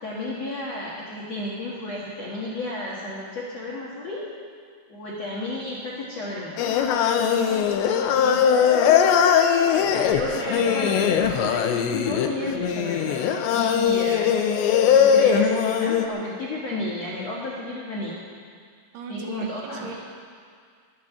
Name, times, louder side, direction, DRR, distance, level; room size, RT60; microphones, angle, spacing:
voice 1, 0.0-4.3 4.9-6.6 9.8-14.3 14.8-18.2 19.1-20.0, left 1 dB, 60° left, -6 dB, 1.7 m, -32 dB
Singing, 6.6-16.1, left 8 dB, 80° left, 2.9 m, -20 dB
voice 2, 7.2-8.5 18.9-20.0, right 4 dB, 85° right, 2 dB, 3.9 m, -38 dB
21.0 x 7.6 x 7.2 m, 2.1 s
omnidirectional pair, 5.4 m